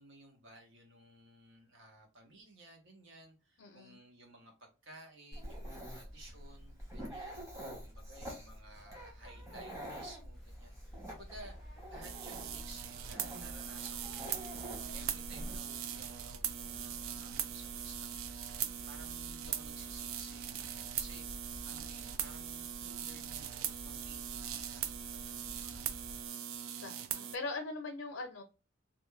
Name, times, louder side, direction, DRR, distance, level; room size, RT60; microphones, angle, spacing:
voice 1, 0.0-24.8 25.1-26.2, right 2 dB, 70° right, 0.9 m, -56 dB
voice 2, 3.6-4.0 25.6-25.7 26.8-28.4, left 3 dB, 90° left, 0.5 m, -41 dB
Dog, 5.3-15.6, equal, 15° right, 0.9 m, -47 dB
sound 1, 10.3-26.3, equal, ahead, 0.5 m, -52 dB
sound 2, 12.0-27.4, right 9 dB, 90° right, 0.3 m, -41 dB
2.5 x 2.2 x 3.1 m
head